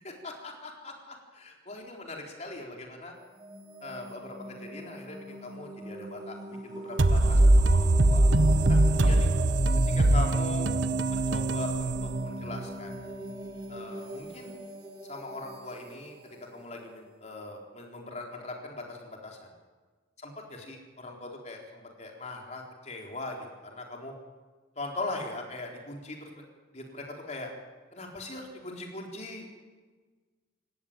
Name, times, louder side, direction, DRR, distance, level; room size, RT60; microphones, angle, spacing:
voice 1, 0.2-3.1 3.8-6.4 6.6-8.2 8.7-9.3 9.9-10.7 11.1-12.9 13.7-14.5 15.1-16.2 16.5-19.5 20.2-24.1 24.8-26.4 26.7-27.5 27.9-29.6, left 2 dB, 35° left, 1 dB, 4.3 m, -40 dB
sound 1, 3.2-17.9, right 1 dB, 20° right, 2.8 m, -42 dB
sound 2, 7.0-12.6, right 2 dB, 75° right, 1.0 m, -22 dB
28.0 x 15.0 x 9.0 m, 1.4 s
head